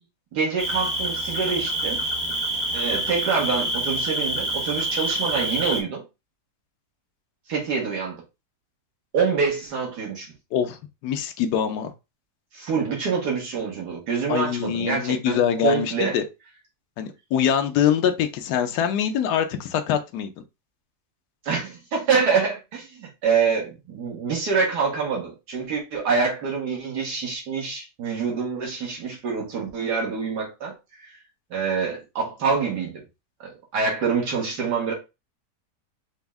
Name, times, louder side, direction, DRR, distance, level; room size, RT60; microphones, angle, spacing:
voice 1, 0.3-2.0 2.7-6.0 7.5-8.2 9.1-10.3 12.5-16.2 21.4-31.2 31.5-33.0 33.4-34.9, right 5 dB, 80° right, 1.6 m, -26 dB
Cricket, 0.6-5.8, right 1 dB, 20° right, 0.9 m, -27 dB
voice 2, 11.0-11.9 14.3-16.2 17.0-20.3, left 9 dB, 80° left, 1.2 m, -24 dB
5.2 x 2.0 x 3.4 m
omnidirectional pair, 1.8 m